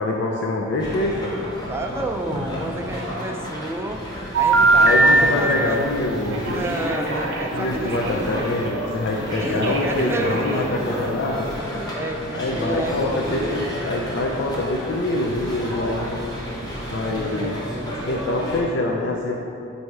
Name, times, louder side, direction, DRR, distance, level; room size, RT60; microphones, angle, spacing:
voice 1, 0.0-1.3 4.8-6.6 7.5-11.5 12.3-16.1 16.8-17.6 18.1-19.4, left 2 dB, 60° left, -1 dB, 0.4 m, -25 dB
sound 1, 0.8-18.6, equal, 20° left, 1.0 m, -32 dB
voice 2, 1.7-5.8 6.4-8.8 9.1-11.2 11.9-13.6 17.1-18.2, right 1 dB, 10° right, 3 dB, 0.3 m, -31 dB
Telephone, 4.3-5.2 6.3-8.5 9.3-10.8, right 3 dB, 60° right, 0.7 m, -21 dB
7.7 x 2.8 x 4.6 m, 2.8 s
head